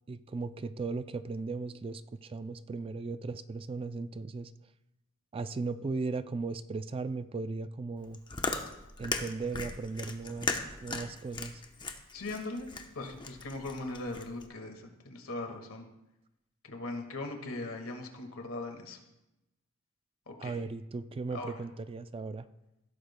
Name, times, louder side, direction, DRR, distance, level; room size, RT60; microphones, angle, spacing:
voice 1, 0.1-4.5 5.3-8.2 9.0-11.6 20.4-22.5, right 3 dB, 25° right, 12 dB, 0.3 m, -37 dB
Chewing mastication, 8.0-14.5, left 3 dB, 20° left, 0.8 m, -37 dB
voice 2, 12.1-12.7 12.9-15.9 16.6-19.0 20.3-20.6 21.3-21.5, left 2 dB, 70° left, 4 dB, 1.8 m, -39 dB
16.0 x 13.0 x 2.2 m, 0.95 s
head